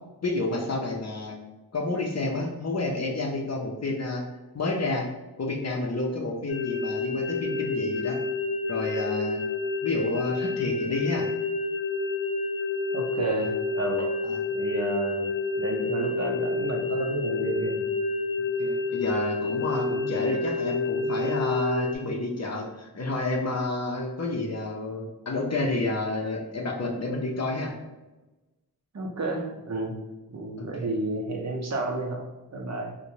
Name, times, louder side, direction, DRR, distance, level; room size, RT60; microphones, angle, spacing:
voice 1, 0.2-1.3 1.7-4.2 4.5-5.1 5.4-8.2 8.7-9.4 9.8-11.3 14.2-14.4 18.6-27.7 30.6-30.9, left 2 dB, 45° left, 0 dB, 0.6 m, -30 dB
sound 1, 6.5-22.0, left 3 dB, 85° left, 0.6 m, -29 dB
voice 2, 12.9-14.1 14.5-15.3 15.6-17.8 28.9-30.0 30.3-33.0, right 2 dB, 45° right, 1 dB, 0.7 m, -31 dB
2.6 x 2.2 x 3.0 m, 1.1 s
cardioid pair, 55°, 38 cm